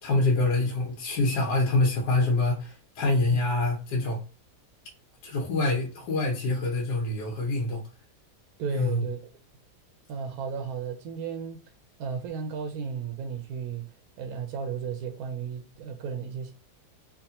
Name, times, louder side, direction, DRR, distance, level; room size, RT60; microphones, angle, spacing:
voice 1, 0.0-4.2 5.2-7.8 8.7-9.0, left 2 dB, 75° left, 1.3 m, -25 dB
voice 2, 8.6-9.2 10.1-11.6 12.0-13.9 14.2-16.5, right 6 dB, 70° right, 0.9 m, -34 dB
3.4 x 2.4 x 2.7 m
omnidirectional pair, 1.8 m